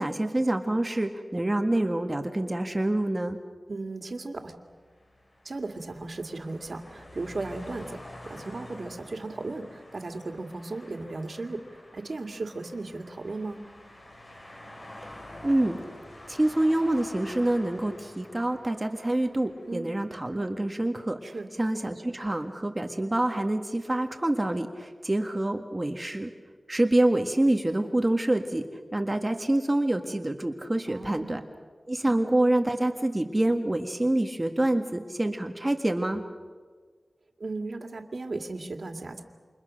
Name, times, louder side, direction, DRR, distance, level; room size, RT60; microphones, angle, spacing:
voice 1, 0.0-3.4 15.4-15.8 16.3-21.2 21.6-26.3 26.7-28.6 28.9-31.4 31.9-36.2, right 1 dB, 25° right, 4 dB, 1.7 m, -26 dB
voice 2, 3.7-4.5 5.4-13.6 19.7-19.9 21.2-21.5 30.9-31.4 37.4-39.2, right 3 dB, 60° right, 5 dB, 2.5 m, -36 dB
sound 1, 4.7-20.1, left 1 dB, 40° left, 4.7 m, -48 dB
29.5 x 27.5 x 6.5 m, 1.5 s
wide cardioid pair, 95°, 0 cm